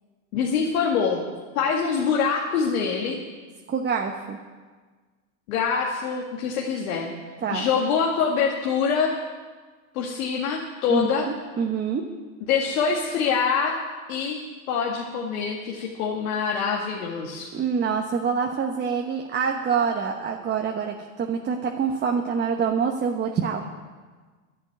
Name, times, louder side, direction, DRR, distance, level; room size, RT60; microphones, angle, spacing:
voice 1, 0.3-1.2 1.6-3.2 5.5-7.1 7.5-9.1 9.9-11.3 12.4-13.8 14.1-14.4 14.7-17.5, left 6 dB, 75° left, -1 dB, 2.2 m, -24 dB
voice 2, 3.7-4.4 7.4-7.7 10.9-12.0 17.5-23.6, right 6 dB, 25° right, 2 dB, 1.2 m, -26 dB
11.0 x 11.0 x 9.1 m, 1.4 s
hypercardioid pair, 110°, 43 cm